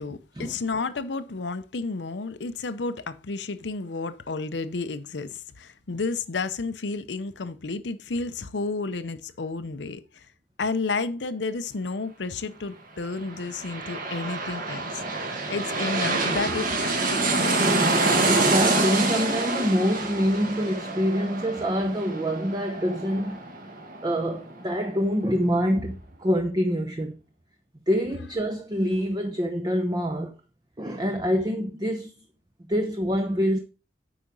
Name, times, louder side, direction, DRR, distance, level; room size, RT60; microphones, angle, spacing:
voice 1, 0.0-10.3 10.6-17.3, left 3 dB, 90° left, 0.7 m, -31 dB
sound 1, 13.2-24.6 24.9-25.0, right 2 dB, 50° right, 1.8 m, -26 dB
voice 2, 18.3-23.4 24.0-27.2 27.9-30.3 30.8-32.1 32.7-33.6, equal, 25° right, 0.8 m, -26 dB
8.7 x 5.0 x 5.2 m
head